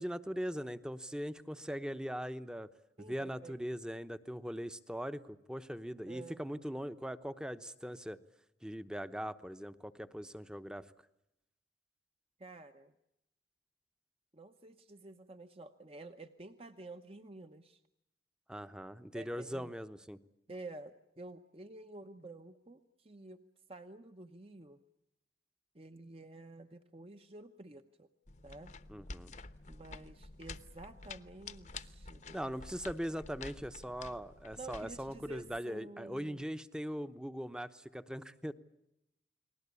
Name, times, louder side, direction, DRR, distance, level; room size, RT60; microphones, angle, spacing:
voice 1, 0.0-2.7 3.0-8.2 8.6-10.9 18.5-20.2 28.9-29.3 32.3-38.5, equal, 5° right, 11 dB, 0.9 m, -40 dB
voice 2, 3.0-3.6 6.1-6.4 12.4-12.9 14.3-17.8 19.1-19.7 20.5-23.4 23.7-24.8 25.7-28.1 28.4-28.7 29.7-32.4 34.6-36.4, right 2 dB, 30° right, 7 dB, 0.9 m, -50 dB
sound 1, 28.3-35.6, left 3 dB, 40° left, 0.9 m, -50 dB
30.0 x 20.5 x 8.4 m, 0.85 s
head